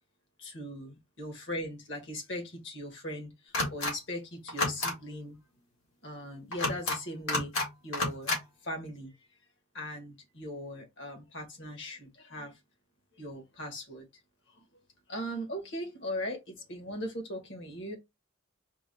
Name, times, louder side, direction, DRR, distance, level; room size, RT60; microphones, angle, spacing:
voice 1, 0.4-5.4 6.0-7.5 7.8-8.3 8.6-9.1 9.7-12.6 13.2-14.0 15.1-18.0, equal, 60° left, 1.5 m, -39 dB
sound 1, 3.5-3.9 4.5-4.9 6.5-7.0 7.3-7.7 7.9-8.4, left 2 dB, 75° left, 2.0 m, -30 dB
4.6 x 2.3 x 4.3 m
head